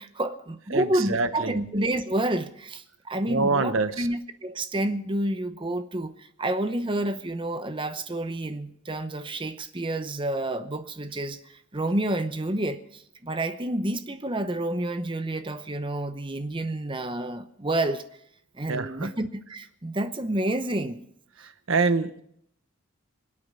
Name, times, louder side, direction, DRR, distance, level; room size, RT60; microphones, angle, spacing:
voice 1, 0.0-18.0 18.5-21.0, right 1 dB, 25° right, 10 dB, 0.8 m, -29 dB
voice 2, 0.7-1.6 3.3-4.1 18.7-19.1 21.4-22.2, right 3 dB, 65° right, 11 dB, 1.0 m, -26 dB
26.0 x 8.6 x 5.4 m, 0.70 s
head